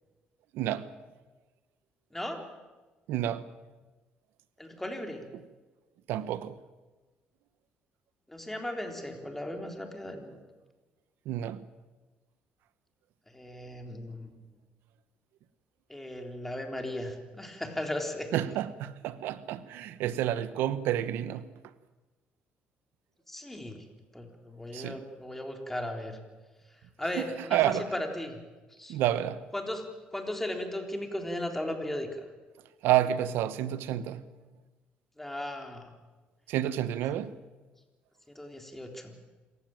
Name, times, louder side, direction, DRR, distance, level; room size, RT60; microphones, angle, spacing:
voice 1, 0.5-0.9 3.1-3.5 6.1-6.5 11.3-11.6 18.3-21.5 24.7-25.0 27.1-27.2 27.5-27.8 28.9-29.4 32.8-34.2 36.5-37.3, right 12 dB, 90° right, 1.0 m, -29 dB
voice 2, 2.1-2.4 4.6-5.2 8.3-10.4 13.3-14.3 15.9-18.3 23.3-23.8 24.1-26.2 27.0-28.4 28.7-29.0 29.5-29.8 30.1-32.3 35.2-35.9 38.4-39.1, left 1 dB, 5° left, 3.7 m, -36 dB
26.5 x 15.5 x 9.1 m
cardioid pair, 110°, 4 cm